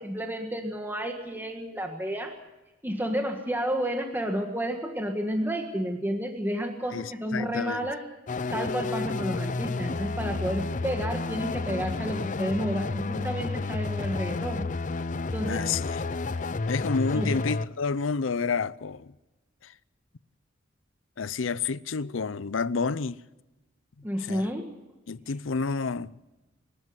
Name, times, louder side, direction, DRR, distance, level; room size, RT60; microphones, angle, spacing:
voice 1, 0.0-2.3 2.8-8.0 8.5-14.7 15.3-15.7 17.1-17.3 24.0-24.7, equal, 10° right, 1.7 m, -31 dB
voice 2, 6.9-7.9 15.5-16.0 16.7-19.1 19.6-19.7 21.2-23.2 24.2-24.5 25.1-26.2, left 4 dB, 85° left, 0.6 m, -30 dB
sound 1, 8.3-17.7, left 3 dB, 40° left, 0.6 m, -31 dB
25.0 x 12.0 x 9.5 m
head